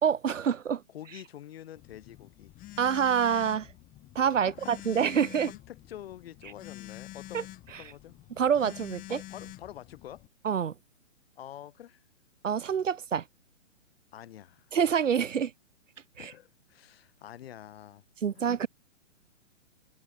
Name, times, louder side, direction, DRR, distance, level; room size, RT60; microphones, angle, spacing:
voice 1, 0.0-0.8 2.8-3.7 4.1-5.5 7.3-7.4 8.4-9.2 10.4-10.7 12.4-13.2 14.7-15.5 16.2-16.3 18.2-18.7, right 7 dB, 80° right, 1.6 m, -26 dB
voice 2, 0.9-2.5 4.5-5.1 5.5-7.5 7.8-8.2 9.1-10.2 11.4-12.0 14.1-14.7 16.2-18.0 18.3-18.5, left 11 dB, 50° left, 4.2 m, -47 dB
Telephone, 1.8-10.3, left 16 dB, 20° left, 3.5 m, -47 dB
hypercardioid pair, 140°, 37 cm